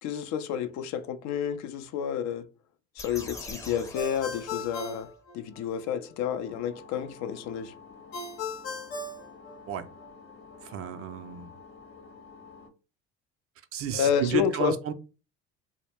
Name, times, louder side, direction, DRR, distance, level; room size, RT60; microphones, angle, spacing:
voice 1, 0.0-2.5 3.0-5.1 5.3-7.7 13.9-14.8, left 8 dB, 55° left, 0.4 m, -30 dB
sound 1, 3.0-5.1, left 1 dB, 10° left, 0.6 m, -44 dB
Ringtone, 3.9-5.9 8.1-10.1, left 3 dB, 80° left, 0.8 m, -37 dB
sound 2, 6.4-12.7, left 4 dB, 40° left, 0.9 m, -50 dB
voice 2, 10.7-11.5 13.7-14.9, right 7 dB, 45° right, 0.4 m, -31 dB
2.2 x 2.0 x 3.3 m
hypercardioid pair, 70°, 33 cm